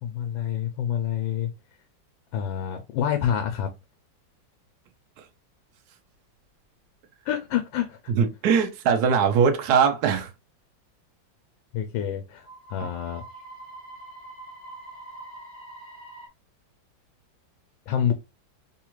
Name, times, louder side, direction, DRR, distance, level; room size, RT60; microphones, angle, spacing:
voice 1, 0.0-1.5 2.3-3.7 7.2-8.0 11.7-13.2 17.9-18.1, left 9 dB, 85° left, 1.3 m, -27 dB
voice 2, 8.1-10.3, right 6 dB, 70° right, 1.0 m, -21 dB
sound 1, 12.4-16.3, right 2 dB, 35° left, 1.0 m, -44 dB
3.5 x 2.3 x 2.9 m
omnidirectional pair, 2.1 m